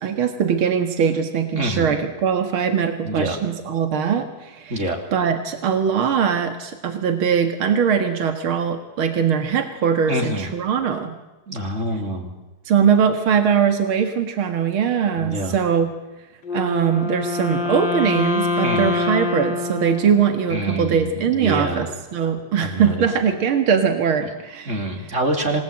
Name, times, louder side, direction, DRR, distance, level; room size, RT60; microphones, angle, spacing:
voice 1, 0.0-4.8 5.1-11.1 12.7-15.9 16.5-24.8, right 7 dB, 80° right, 6 dB, 2.6 m, -21 dB
voice 2, 1.5-2.0 3.1-3.4 4.7-5.0 10.1-10.5 11.5-12.3 15.2-15.6 18.6-19.0 20.5-21.9 22.6-23.1 24.7-25.6, right 1 dB, 35° right, 3 dB, 3.5 m, -26 dB
Wind instrument woodwind instrument, 16.4-20.7, left 3 dB, 60° left, 2.8 m, -25 dB
26.5 x 19.0 x 8.9 m, 1.0 s
omnidirectional pair, 2.2 m